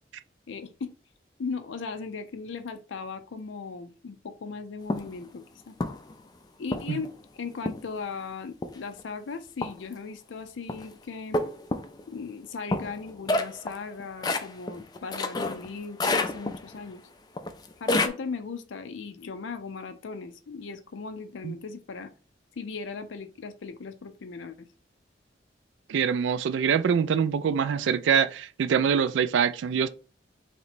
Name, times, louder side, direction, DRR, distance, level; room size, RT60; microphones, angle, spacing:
voice 1, 0.5-0.9 1.4-5.8 6.6-11.4 12.1-17.0 17.8-22.1 22.6-24.7, left 4 dB, 85° left, 0.5 m, -38 dB
sound 1, 4.9-5.1 5.8-6.1 6.7-7.1 7.7-8.0 8.6-9.0 9.6-9.9 10.7-10.9 11.3-12.0 12.7-15.7 16.0-16.8 17.4-18.1, left 2 dB, 20° left, 0.3 m, -28 dB
voice 2, 25.9-29.9, right 7 dB, 80° right, 0.3 m, -24 dB
3.2 x 2.9 x 4.1 m
head